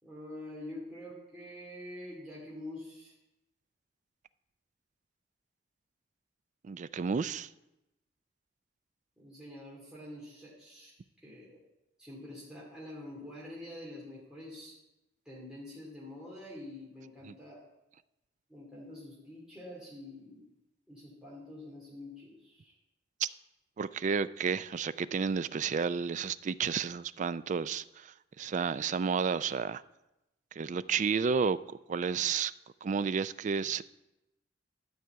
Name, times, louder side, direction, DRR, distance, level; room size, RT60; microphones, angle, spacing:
voice 1, 0.0-3.1 9.2-10.9 11.2-11.6 12.0-14.7 15.2-17.6 18.5-20.5 20.9-22.7, left 1 dB, 5° right, -6 dB, 2.4 m, -46 dB
voice 2, 6.6-7.5 17.3-17.4 23.2-23.3 23.8-29.8 30.6-31.6 31.9-32.5 32.8-33.8, right 6 dB, 40° right, 16 dB, 0.3 m, -31 dB
12.0 x 4.8 x 8.0 m, 0.93 s
head